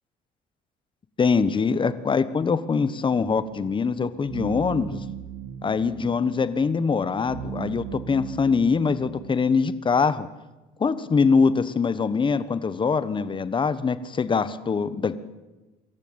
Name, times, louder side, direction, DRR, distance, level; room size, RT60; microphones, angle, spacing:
voice 1, 1.2-5.0 5.6-10.3 10.8-15.1, left 5 dB, 30° left, 14 dB, 1.3 m, -23 dB
sound 1, 3.1-9.3, right 8 dB, 80° right, 2.1 m, -38 dB
24.5 x 14.0 x 8.9 m, 1.1 s
cardioid pair, 110°, 17 cm